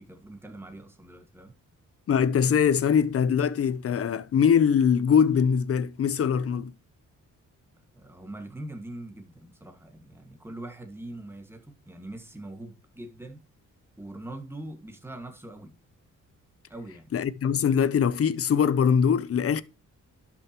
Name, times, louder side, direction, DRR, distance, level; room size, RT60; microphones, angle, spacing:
voice 1, 0.0-1.6 7.9-13.4 14.0-15.8 16.7-17.1, right 1 dB, 5° right, 1.8 m, -42 dB
voice 2, 2.1-6.7 17.1-19.6, left 7 dB, 45° left, 0.7 m, -22 dB
12.0 x 5.9 x 3.0 m
cardioid pair, 115°, 32 cm